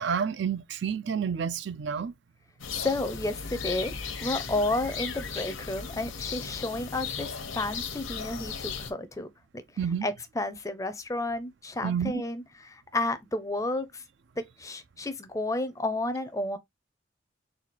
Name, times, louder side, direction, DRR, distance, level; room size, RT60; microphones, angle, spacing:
voice 1, 0.0-2.1 9.8-10.1 11.8-12.2, right 7 dB, 60° right, 0.4 m, -29 dB
sound 1, 2.6-8.9, left 6 dB, 80° left, 0.9 m, -36 dB
voice 2, 2.7-3.9 4.2-9.3 10.0-14.0 14.4-16.6, left 2 dB, 15° left, 0.5 m, -31 dB
4.2 x 2.3 x 4.5 m
head